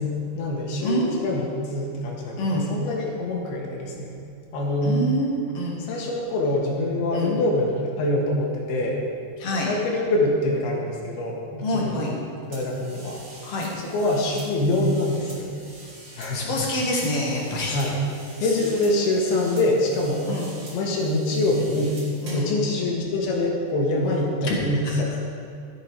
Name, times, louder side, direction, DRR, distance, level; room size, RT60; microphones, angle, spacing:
voice 1, 0.0-4.2 4.5-5.0 5.9-9.0 9.7-12.0 12.5-13.2 13.9-15.7 16.2-16.7 17.7-18.0 18.4-20.3 20.7-22.0 22.3-25.2, left 1 dB, 70° left, -1 dB, 3.4 m, -25 dB
voice 2, 0.8-1.4 2.4-2.7 4.8-5.8 7.1-7.4 9.4-9.7 11.6-12.1 13.4-13.7 16.3-17.8 18.4-18.5 20.3-20.5 22.2-22.6 24.4-24.6 24.8-25.0, left 1 dB, 55° left, -3 dB, 1.8 m, -26 dB
sound 1, 12.5-22.5, equal, 35° right, 3.8 m, -43 dB
13.0 x 8.6 x 4.7 m, 2.4 s
omnidirectional pair, 4.9 m